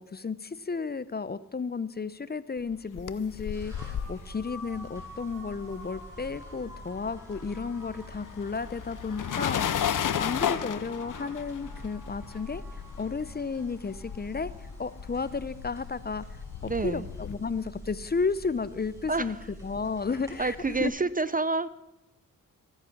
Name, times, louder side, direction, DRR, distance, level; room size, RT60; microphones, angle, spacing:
voice 1, 0.0-9.9 10.2-16.2 16.6-19.4 19.6-20.9, left 4 dB, 30° left, 16 dB, 0.6 m, -33 dB
sound 1, 2.7-6.4 6.6-17.4, left 9 dB, 65° left, 0.8 m, -35 dB
sound 2, 3.5-20.9, equal, 10° right, 5.8 m, -46 dB
voice 2, 16.7-17.1 19.1-19.5 20.4-21.7, right 3 dB, 25° right, 16 dB, 0.5 m, -28 dB
15.5 x 9.0 x 7.1 m, 0.94 s
cardioid pair, 70°, 34 cm